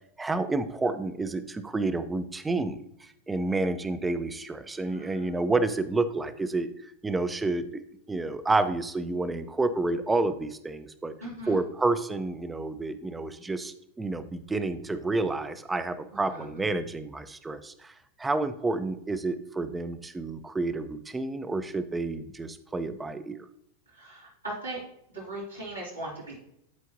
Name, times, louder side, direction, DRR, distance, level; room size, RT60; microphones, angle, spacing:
voice 1, 0.2-7.8 8.1-11.1 11.5-23.4, right 3 dB, 10° right, 11 dB, 0.5 m, -29 dB
voice 2, 4.9-5.2 11.2-11.6 16.1-16.6 23.9-24.8 25.1-26.3, right 1 dB, 85° right, -8 dB, 2.9 m, -39 dB
11.5 x 4.5 x 2.7 m, 0.77 s
figure-of-eight pair, 90°, 0 cm